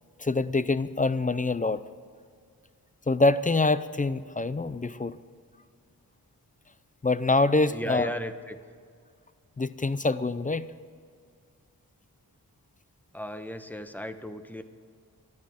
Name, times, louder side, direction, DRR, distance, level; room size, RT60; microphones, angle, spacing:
voice 1, 0.2-1.8 3.1-5.2 7.0-8.1 9.6-10.7, left 3 dB, 20° left, 14 dB, 0.5 m, -25 dB
voice 2, 7.7-8.6 13.1-14.6, left 1 dB, 5° left, 9 dB, 1.0 m, -35 dB
24.5 x 12.0 x 3.6 m, 2.1 s
wide cardioid pair, 65°, 38 cm